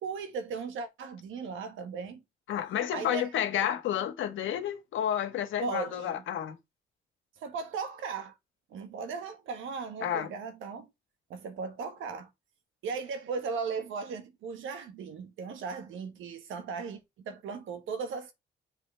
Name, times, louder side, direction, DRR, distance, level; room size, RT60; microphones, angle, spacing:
voice 1, 0.0-2.2 2.9-3.7 5.6-6.2 7.4-8.3 8.7-10.9 11.3-12.3 12.8-18.3, right 5 dB, 80° right, 1.4 m, -37 dB
voice 2, 2.5-6.6 10.0-10.3, left 10 dB, 75° left, 1.3 m, -30 dB
7.5 x 4.8 x 3.3 m
cardioid pair, 90°, 20 cm